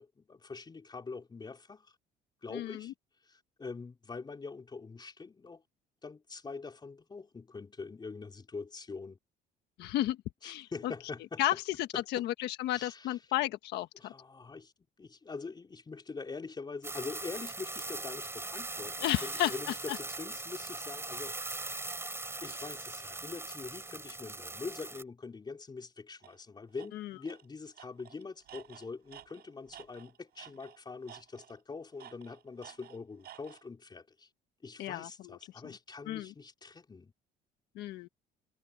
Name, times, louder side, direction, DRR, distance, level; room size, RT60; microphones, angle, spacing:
voice 1, 0.0-1.9 2.4-2.9 3.2-5.6 6.0-9.2 10.4-11.4 11.9-12.3 12.7-13.2 14.0-14.7 15.0-21.7 22.4-34.3 34.6-37.1, left 4 dB, 25° left, 4.1 m, -44 dB
voice 2, 2.5-2.9 9.8-10.2 10.4-10.9 11.4-11.5 12.1-14.1 19.0-19.5 19.9-20.0 26.9-27.1 34.8-35.4 35.6-35.7 36.1-36.3 37.7-38.1, left 14 dB, 80° left, 1.4 m, -33 dB
sound 1, 16.8-25.0, right 2 dB, 15° right, 4.2 m, -40 dB
Tools, 26.2-26.4 26.8-26.9 27.3-27.5 27.8-30.8 31.1-31.6 32.0-33.6, right 12 dB, 65° right, 7.7 m, -52 dB
cardioid pair, 110°, 17 cm